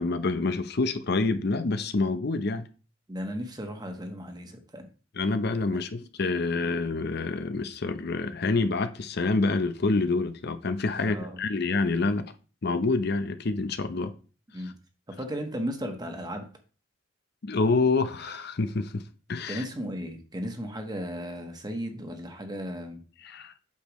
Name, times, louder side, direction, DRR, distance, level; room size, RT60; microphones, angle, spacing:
voice 1, 0.0-2.7 5.2-12.2 12.6-14.1 14.6-14.7 17.4-19.0 19.3-19.6 23.2-23.5, left 3 dB, 55° left, 0.6 m, -27 dB
voice 2, 3.1-4.9 11.0-11.4 14.5-14.7 15.2-16.5 19.5-23.0, equal, 20° right, 1.2 m, -35 dB
8.3 x 6.6 x 3.1 m
head